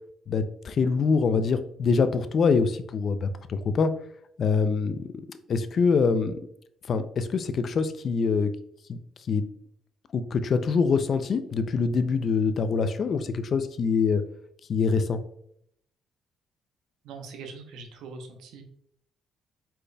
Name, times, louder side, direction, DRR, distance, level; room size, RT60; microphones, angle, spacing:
voice 1, 0.3-3.9 4.4-5.1 5.5-6.4 6.9-8.5 8.9-9.0 9.3-9.4 10.1-14.2 14.7-15.2, left 5 dB, 55° left, 11 dB, 0.4 m, -24 dB
voice 2, 17.0-18.6, right 4 dB, 85° right, 5 dB, 0.8 m, -42 dB
5.0 x 4.3 x 2.2 m, 0.71 s
cardioid pair, 90°, 0 cm